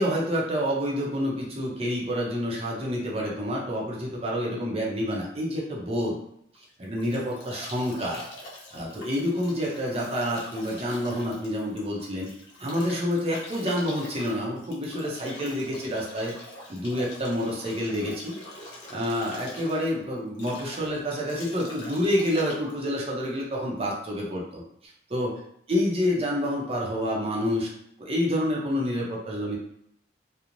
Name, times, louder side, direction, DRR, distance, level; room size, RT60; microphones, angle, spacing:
voice 1, 0.0-6.2 6.6-8.3 8.7-12.3 12.6-16.3 16.7-18.4 18.6-24.6 25.1-25.3 25.7-27.7 28.0-29.6, equal, 35° right, -3 dB, 0.6 m, -28 dB
Bathtub (filling or washing) / Drip / Trickle dribble, 6.5-23.8, left 1 dB, 80° left, 0.8 m, -44 dB
2.9 x 2.0 x 2.5 m, 0.71 s
head